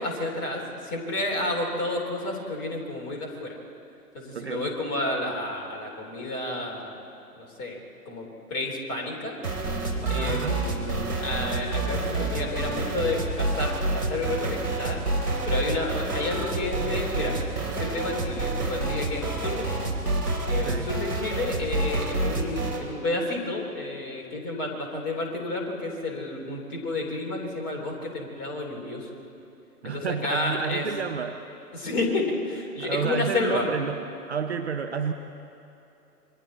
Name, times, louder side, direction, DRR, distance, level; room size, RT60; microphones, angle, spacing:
voice 1, 0.0-3.6 4.1-7.0 7.4-7.8 8.1-9.4 10.1-15.0 15.4-19.9 20.5-29.1 29.8-30.9 31.7-33.7, left 2 dB, 20° left, -2 dB, 3.4 m, -31 dB
voice 2, 4.3-4.7 10.0-10.6 20.6-21.0 29.8-31.4 32.8-34.0 34.3-35.1, right 6 dB, 45° right, 6 dB, 0.9 m, -30 dB
sound 1, 9.4-22.9, right 2 dB, 75° right, 3.6 m, -28 dB
28.0 x 23.5 x 4.2 m, 2.8 s
figure-of-eight pair, 130°, 47 cm